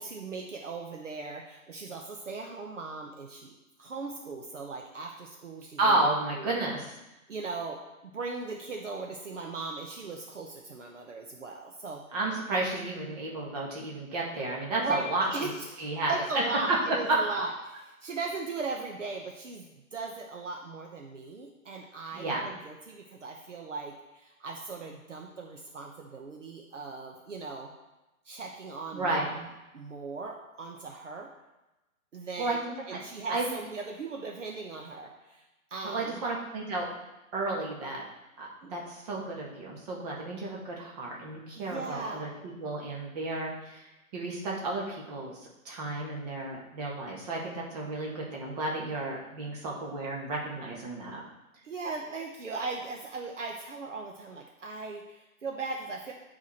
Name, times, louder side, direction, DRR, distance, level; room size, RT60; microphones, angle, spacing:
voice 1, 0.0-6.0 6.4-6.5 7.3-7.8 8.0-12.0 14.8-15.0 15.3-15.8 16.1-27.7 28.2-31.3 32.1-32.6 32.9-35.4 35.7-36.2 38.6-38.8 41.5-42.2 51.6-56.1, right 4 dB, 60° right, 1 dB, 1.1 m, -38 dB
voice 2, 5.8-6.9 12.1-15.5 15.8-16.2 16.9-17.2 22.1-22.5 28.9-29.3 32.4-33.0 33.3-33.5 35.8-36.9 37.3-38.0 38.4-42.3 42.6-43.8 44.1-45.4 45.7-51.2, right 2 dB, 30° right, -3 dB, 1.7 m, -32 dB
9.2 x 4.8 x 4.3 m, 1.0 s
figure-of-eight pair, 145°, 42 cm